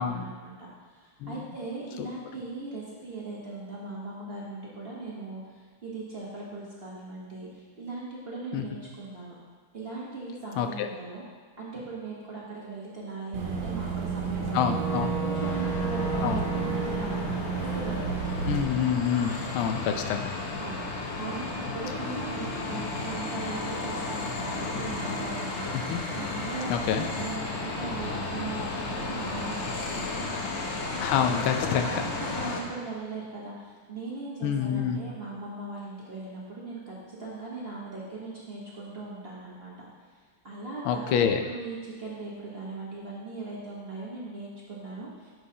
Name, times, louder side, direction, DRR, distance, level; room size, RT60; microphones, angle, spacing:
voice 1, 0.0-9.3 9.7-11.2 11.6-18.1 20.6-20.9 21.2-30.4 31.8-39.9 40.4-45.3, right 3 dB, 35° right, -6 dB, 1.1 m, -39 dB
voice 2, 10.6-10.9 14.5-15.1 16.2-16.4 18.5-20.3 25.9-26.0 26.7-27.0 31.0-32.0 34.4-35.0 40.8-41.4, left 8 dB, 85° left, 6 dB, 1.5 m, -27 dB
Boat Water vehicle / Engine, 13.3-18.6, right 5 dB, 75° right, 1.9 m, -30 dB
sound 1, 15.4-32.6, left 3 dB, 60° left, 0.7 m, -34 dB
10.5 x 6.3 x 2.8 m, 1.5 s
omnidirectional pair, 2.3 m